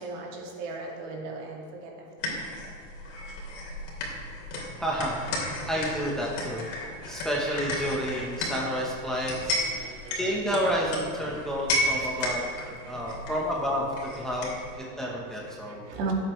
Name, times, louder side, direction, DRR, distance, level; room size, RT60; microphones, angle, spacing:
voice 1, 0.0-1.9 2.2-2.4 7.0-7.1 9.6-10.2 11.7-12.3 12.6-12.9 14.8-15.1 15.6-16.1, right 3 dB, 65° right, -1 dB, 2.3 m, -38 dB
sound 1, 2.2-14.7, left 1 dB, 60° left, 2.8 m, -33 dB
voice 2, 4.8-6.6 7.1-12.4 12.8-15.8, equal, ahead, -4 dB, 1.0 m, -30 dB
16.0 x 7.8 x 3.2 m, 2.2 s
supercardioid pair, 160°, 41 cm